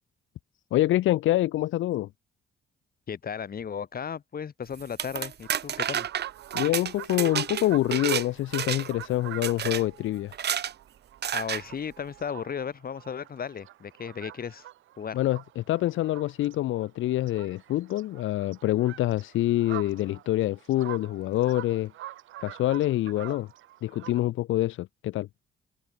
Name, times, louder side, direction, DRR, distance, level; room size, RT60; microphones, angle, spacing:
voice 1, 0.7-2.1 6.5-10.3 15.1-21.9 22.4-23.5 23.8-25.3, left 15 dB, 80° left, 1.0 m, -26 dB
voice 2, 3.1-6.1 11.3-14.7 15.0-15.2, left 7 dB, 50° left, 4.0 m, -35 dB
sound 1, 4.8-8.3 8.5-9.0 9.4-9.8 10.3-10.7 11.2-11.6, right 9 dB, 55° right, 2.2 m, -30 dB
sound 2, 5.4-16.6 16.8-24.2, right 14 dB, 80° right, 1.7 m, -45 dB
open air
cardioid pair, 90°, 20 cm